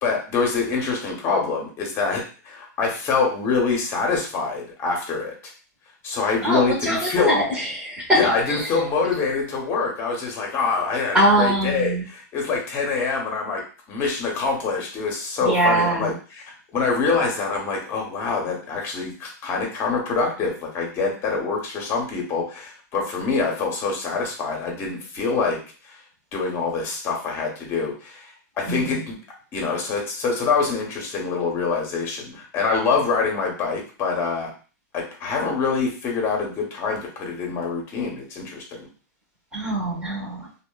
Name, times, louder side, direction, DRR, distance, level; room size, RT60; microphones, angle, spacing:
voice 1, 0.0-5.3 6.0-7.4 8.1-16.4 16.7-25.6 25.8-26.0 26.3-28.3 28.6-29.2 29.5-34.5 34.9-38.9, left 4 dB, 25° left, 0 dB, 0.8 m, -25 dB
voice 2, 6.4-8.2 8.5-8.6 11.1-12.0 15.4-16.1 28.7-28.9 39.5-40.5, right 1 dB, 10° right, -3 dB, 0.9 m, -22 dB
2.8 x 2.1 x 2.2 m, 0.37 s
hypercardioid pair, 150°, 9 cm